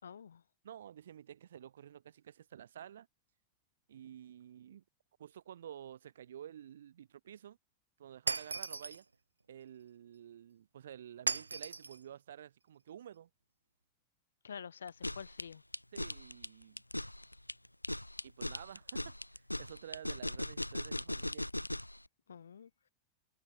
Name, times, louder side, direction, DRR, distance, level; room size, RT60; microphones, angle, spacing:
voice 1, 0.0-0.4 14.4-15.6 22.3-22.7, left 7 dB, 70° left, 3.7 m, -48 dB
voice 2, 0.6-3.1 3.9-4.8 5.2-7.6 8.0-9.0 9.5-13.3 15.9-16.8 18.2-21.5, right 10 dB, 65° right, 5.3 m, -51 dB
Shatter, 8.3-9.0 11.3-12.0, right 4 dB, 80° right, 1.1 m, -36 dB
sound 1, 14.9-22.0, left 1 dB, 85° left, 1.5 m, -39 dB
figure-of-eight pair, 90°, 0 cm